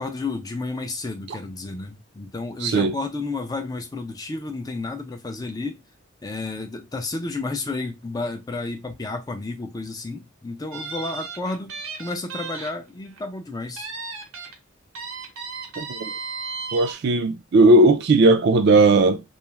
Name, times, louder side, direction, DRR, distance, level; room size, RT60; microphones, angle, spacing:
voice 1, 0.0-5.8 6.2-13.9, left 3 dB, 20° left, 0.3 m, -31 dB
voice 2, 2.6-2.9 15.8-16.1 16.7-19.2, right 2 dB, 55° right, 0.3 m, -17 dB
sound 1, 10.7-12.7 13.1-13.2 13.8-14.5 14.9-16.9, right 4 dB, 90° right, 0.8 m, -34 dB
2.3 x 2.0 x 3.0 m
head